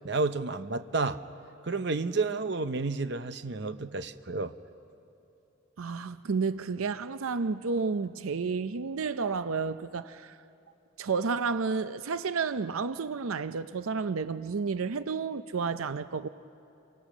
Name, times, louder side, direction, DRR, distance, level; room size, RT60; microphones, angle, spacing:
voice 1, 0.0-1.2 1.6-4.5, right 3 dB, 55° right, 0.7 m, -30 dB
voice 2, 5.8-10.4 11.0-16.3, right 5 dB, 90° right, 0.6 m, -31 dB
29.0 x 24.5 x 6.1 m
head